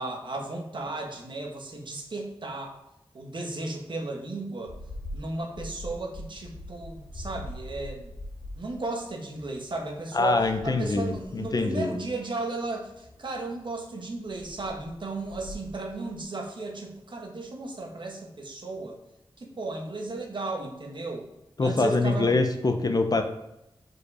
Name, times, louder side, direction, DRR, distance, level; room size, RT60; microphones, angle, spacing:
voice 1, 0.0-2.8 3.1-4.8 5.1-8.1 8.5-19.0 19.4-21.3 21.6-22.3, right 2 dB, 55° right, 1 dB, 1.3 m, -35 dB
sound 1, 4.7-16.2, left 1 dB, 80° left, 2.4 m, -44 dB
voice 2, 10.1-11.9 21.6-23.2, left 3 dB, 40° left, 7 dB, 0.6 m, -24 dB
4.9 x 4.7 x 4.9 m, 0.87 s
wide cardioid pair, 95°, 10 cm